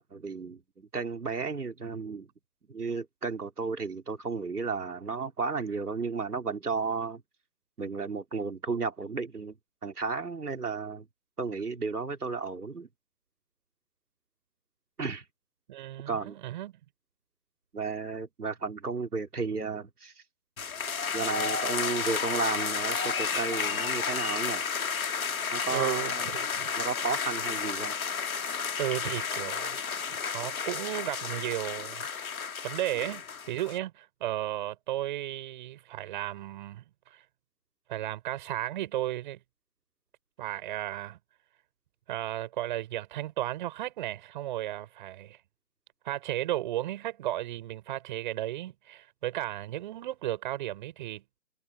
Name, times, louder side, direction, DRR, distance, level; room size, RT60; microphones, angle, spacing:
voice 1, 0.0-2.3 2.7-7.2 7.8-9.6 9.8-11.1 11.4-12.9 15.0-15.2 16.1-16.4 17.7-20.2 21.1-24.6 25.5-26.3 26.8-28.0, right 4 dB, 90° right, 3.5 m, -33 dB
voice 2, 15.7-16.7 25.7-26.7 28.8-29.8 30.3-32.1 32.6-33.2 33.5-37.2 37.9-39.4 40.4-41.2 42.1-45.4 46.0-51.2, right 14 dB, 35° right, 6.8 m, -34 dB
sound 1, 20.6-33.8, left 6 dB, 70° left, 2.3 m, -32 dB
hypercardioid pair, 150°, 44 cm